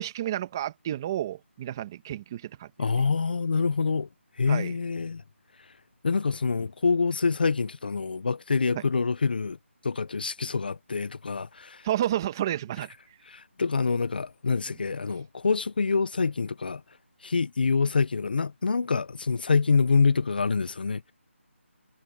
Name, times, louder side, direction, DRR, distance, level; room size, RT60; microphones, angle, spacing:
voice 1, 0.0-2.7 4.5-4.7 8.7-8.8 11.8-12.9, right 12 dB, 15° right, 1.7 m, -30 dB
voice 2, 2.8-4.1 4.4-5.2 6.0-9.6 9.8-11.9 13.3-16.8 17.2-21.1, left 4 dB, 45° left, 0.8 m, -26 dB
figure-of-eight pair, 175°, 7 cm